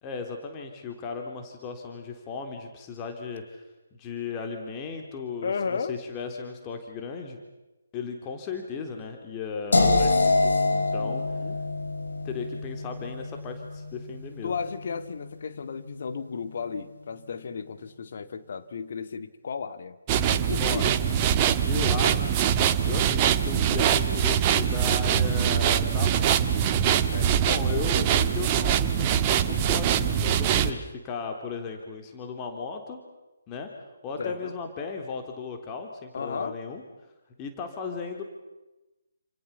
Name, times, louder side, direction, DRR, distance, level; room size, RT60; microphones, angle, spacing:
voice 1, 0.0-3.6 3.9-7.4 7.9-11.2 12.2-14.6 20.6-20.9 21.7-22.5 22.9-26.5 27.4-33.0 33.5-33.7 34.0-36.8 37.4-38.2, left 5 dB, 20° left, 4 dB, 3.6 m, -36 dB
voice 2, 5.4-5.9 11.0-11.6 14.4-20.0 20.3-20.9 27.1-27.3 34.2-34.5 36.1-36.6, left 5 dB, 45° left, 10 dB, 2.3 m, -34 dB
sound 1, 9.7-15.6, left 3 dB, 65° left, 7.0 m, -26 dB
sound 2, 20.1-30.7, right 9 dB, 25° right, 1.6 m, -23 dB
30.0 x 28.0 x 7.1 m, 1.0 s
figure-of-eight pair, 140°, 0 cm